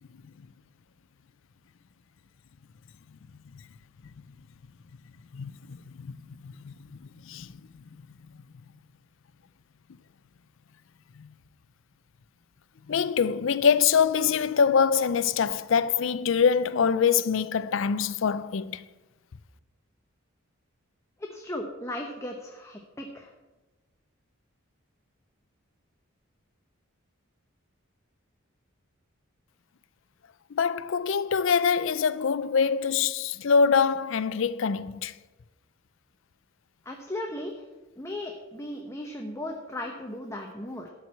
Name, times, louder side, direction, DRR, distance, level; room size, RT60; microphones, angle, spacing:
voice 1, 5.3-5.8 6.1-6.2 6.4-6.7 7.3-7.5 12.9-18.8 30.5-35.1, left 6 dB, 65° left, 0.4 m, -24 dB
voice 2, 21.3-23.3 36.8-37.6 38.0-40.9, left 1 dB, 15° left, 0.8 m, -36 dB
12.5 x 4.6 x 8.4 m
head